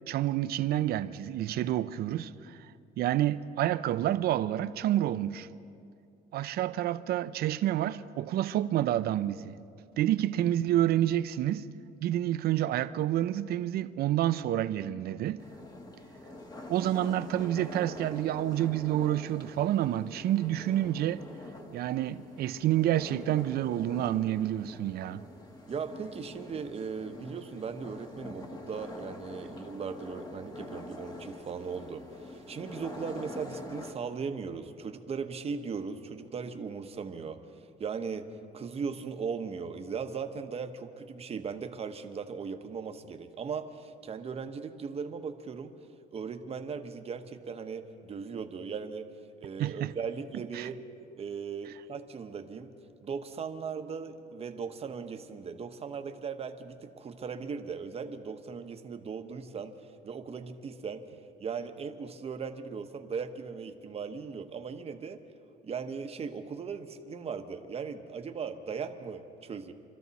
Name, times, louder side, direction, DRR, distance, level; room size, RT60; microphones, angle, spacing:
voice 1, 0.1-2.6 3.0-5.5 6.3-9.6 10.0-11.7 12.0-15.4 16.7-21.2 21.7-25.3 49.6-49.9 50.5-50.7, right 13 dB, 65° right, 0.6 m, -28 dB
sound 1, 15.4-33.9, left 2 dB, 25° left, 1.4 m, -45 dB
voice 2, 25.7-37.4 37.8-45.7 46.1-49.1 49.4-50.8 51.2-52.7 53.0-61.0 61.4-65.2 65.6-69.7, right 5 dB, 35° right, 1.0 m, -38 dB
25.5 x 13.5 x 4.1 m
cardioid pair, 110°, 17 cm